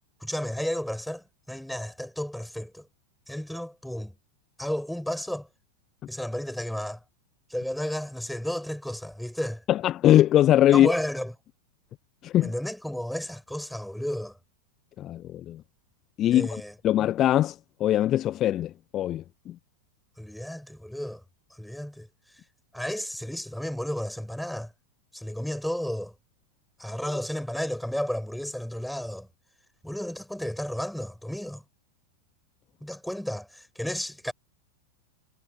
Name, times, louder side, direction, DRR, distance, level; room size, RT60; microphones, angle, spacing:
voice 1, 0.2-2.9 3.3-4.1 4.6-5.5 6.1-7.0 7.5-9.6 10.7-11.3 12.4-14.4 16.3-16.7 20.2-21.2 21.6-22.1 22.7-24.7 25.1-26.1 26.8-29.3 29.8-31.6 32.8-34.3, equal, ahead, 7.8 m, -32 dB
voice 2, 9.7-10.9 12.2-12.5 15.0-15.6 16.2-16.5 16.8-19.5, left 12 dB, 30° left, 1.2 m, -22 dB
figure-of-eight pair, 90°, 0 cm